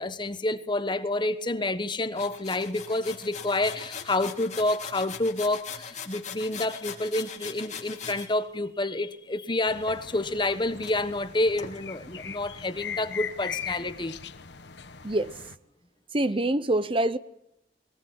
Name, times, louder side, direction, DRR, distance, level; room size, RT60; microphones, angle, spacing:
voice 1, 0.0-14.2, left 2 dB, 25° left, 1.2 m, -28 dB
sound 1, 2.2-8.3 9.9-10.5 10.8-10.9 11.6-11.8, left 6 dB, 45° left, 3.1 m, -40 dB
sound 2, 9.7-15.6, left 7 dB, 85° left, 1.3 m, -40 dB
voice 2, 16.1-17.2, right 1 dB, 30° right, 0.8 m, -25 dB
21.5 x 19.0 x 8.2 m
head